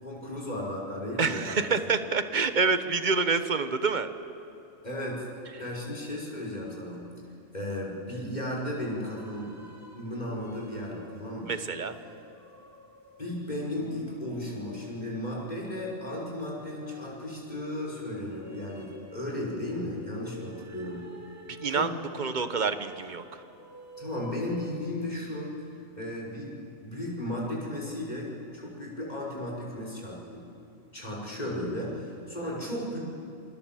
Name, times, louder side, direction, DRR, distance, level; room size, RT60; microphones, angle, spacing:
voice 1, 0.0-1.7 4.8-5.3 5.6-7.1 7.5-9.7 10.0-11.5 13.2-21.1 21.7-21.9 24.0-25.5 26.0-30.5 30.9-33.0, left 1 dB, 30° left, -3 dB, 6.0 m, -35 dB
voice 2, 1.2-4.1 11.5-12.0 21.5-21.9 22.2-23.4, right 4 dB, 40° right, 10 dB, 1.3 m, -27 dB
sound 1, 8.8-24.7, left 1 dB, 10° right, 2.2 m, -50 dB
27.5 x 25.5 x 7.7 m, 2.7 s
omnidirectional pair, 1.3 m